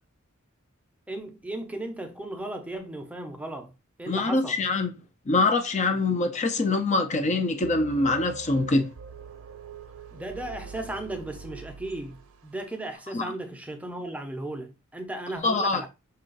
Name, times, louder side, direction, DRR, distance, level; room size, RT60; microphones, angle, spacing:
voice 1, 1.1-3.7 4.0-4.6 10.1-15.9, right 1 dB, 5° right, 0.6 m, -36 dB
voice 2, 4.1-4.9 5.3-8.9 13.1-13.2 15.4-15.8, left 3 dB, 35° left, 0.5 m, -24 dB
sound 1, 7.6-12.6, right 5 dB, 70° right, 0.5 m, -43 dB
5.5 x 2.4 x 3.9 m
head